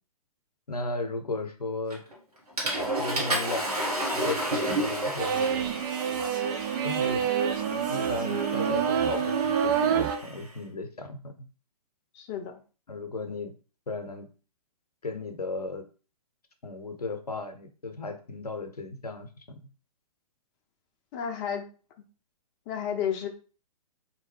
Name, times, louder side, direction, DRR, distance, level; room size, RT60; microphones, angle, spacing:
voice 1, 0.7-2.0 3.0-5.5 6.8-7.3 7.7-11.5 12.9-13.5 13.9-14.3 15.0-15.9 16.6-19.6, left 2 dB, 85° left, 7 dB, 0.7 m, -35 dB
Water / Toilet flush, 1.9-2.2 2.6-10.4, right 1 dB, 80° right, 1.6 m, -32 dB
sound 1, 5.2-10.2, right 7 dB, 35° right, 0.4 m, -27 dB
voice 2, 12.1-12.6 21.1-21.6 22.7-23.3, left 8 dB, 30° left, 4 dB, 0.5 m, -31 dB
3.4 x 2.7 x 3.2 m, 0.35 s
figure-of-eight pair, 120°, 19 cm